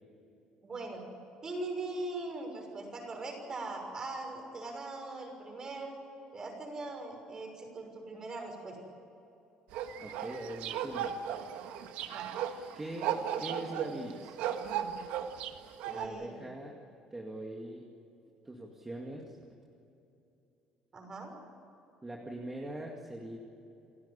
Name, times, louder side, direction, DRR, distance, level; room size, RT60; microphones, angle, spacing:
voice 1, 0.6-1.0 1.4-6.0 6.3-8.8 12.0-12.3 15.8-16.4 20.9-21.3, right 2 dB, 30° right, 3 dB, 6.2 m, -40 dB
sound 1, 9.7-16.1, right 9 dB, 85° right, 1.6 m, -36 dB
voice 2, 10.0-11.1 12.7-14.3 15.9-16.8 17.1-17.9 18.4-19.4 22.0-23.4, right 1 dB, 15° right, 1 dB, 2.2 m, -42 dB
28.5 x 12.5 x 10.0 m, 2.9 s
cardioid pair, 125°, 2 cm